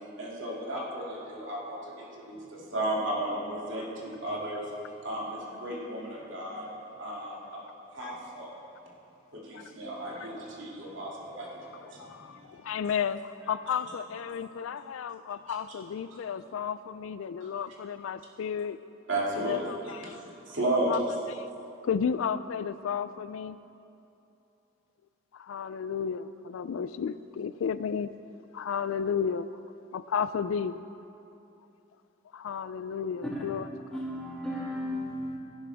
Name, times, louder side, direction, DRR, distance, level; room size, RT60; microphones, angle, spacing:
voice 1, 0.2-4.7 5.0-6.7 7.0-7.6 7.9-8.6 9.3-12.7 17.4-17.6 19.1-19.6 20.0-20.2 20.4-21.2, right 1 dB, 65° right, -5 dB, 2.7 m, -34 dB
voice 2, 12.0-18.8 19.4-20.2 20.9-21.0 21.3-21.5 21.8-23.6 25.3-28.1 28.5-29.5 29.9-30.8 32.3-33.6, left 7 dB, 75° left, 14 dB, 0.3 m, -33 dB
voice 3, 33.9-35.4, equal, 5° left, -7 dB, 2.4 m, -34 dB
16.0 x 11.0 x 3.5 m, 2.8 s
head